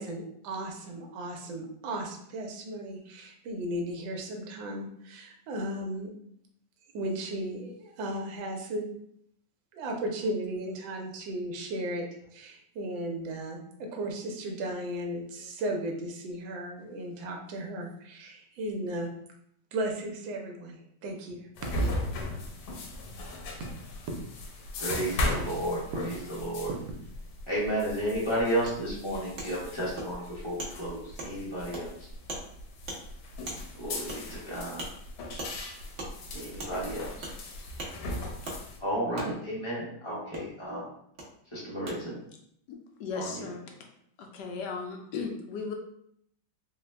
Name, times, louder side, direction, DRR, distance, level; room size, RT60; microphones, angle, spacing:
voice 1, 0.0-6.1 6.9-8.9 9.7-12.1 12.3-19.1 19.7-21.4, right 1 dB, 75° right, 2 dB, 1.4 m, -35 dB
Preparing Breakfast, 21.5-38.8, left 1 dB, 90° left, 1.5 m, -37 dB
voice 2, 24.8-26.7 27.5-32.1 33.8-34.8 36.3-37.3 38.8-40.9 41.5-42.2 43.1-43.5, right 1 dB, 25° left, -7 dB, 0.6 m, -32 dB
Wood, 28.7-28.8 29.4-29.5 30.0-30.1 30.6-30.7 31.2-31.3 31.7-31.8 32.3-32.4 32.9-33.0 33.5-33.6 34.1-34.2 34.8-34.9 35.4-35.5 36.0-36.1 36.6-36.7 37.2-37.4 37.8-37.9 38.4-38.6 39.2-39.3 40.3-40.4 41.2-41.3 41.9-42.0, right 2 dB, 55° right, 0.7 m, -38 dB
voice 3, 42.7-43.6 44.2-45.7, left 5 dB, 75° left, 2 dB, 1.0 m, -36 dB
3.9 x 2.1 x 3.2 m, 0.70 s
omnidirectional pair, 2.1 m